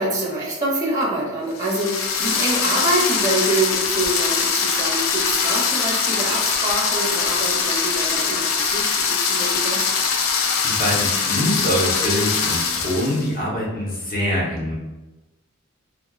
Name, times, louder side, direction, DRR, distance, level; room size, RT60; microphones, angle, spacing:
voice 1, 0.0-9.9, right 2 dB, 20° right, -4 dB, 0.5 m, -25 dB
sound 1, 1.6-13.3, left 5 dB, 75° left, 0.4 m, -22 dB
voice 2, 10.6-14.7, equal, 45° left, -5 dB, 1.0 m, -24 dB
3.2 x 2.4 x 2.3 m, 1.0 s
head